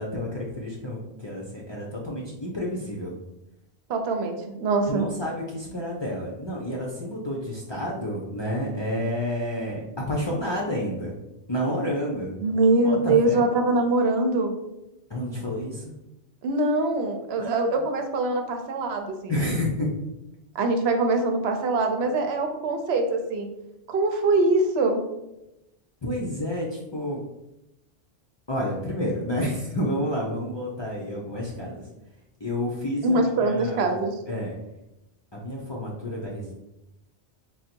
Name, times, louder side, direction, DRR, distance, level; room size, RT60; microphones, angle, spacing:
voice 1, 0.0-3.2 4.9-11.2 11.5-12.4 12.9-13.4 15.1-15.9 17.4-17.7 19.3-19.9 26.0-27.2 28.5-31.8 32.4-34.0 34.3-34.5 35.3-36.6, equal, 35° left, -3 dB, 0.5 m, -30 dB
voice 2, 3.9-5.0 12.4-14.5 16.4-19.3 20.5-23.5 23.9-25.0 33.0-34.1, right 2 dB, 75° right, 5 dB, 0.8 m, -23 dB
3.8 x 2.1 x 4.3 m, 0.91 s
omnidirectional pair, 1.1 m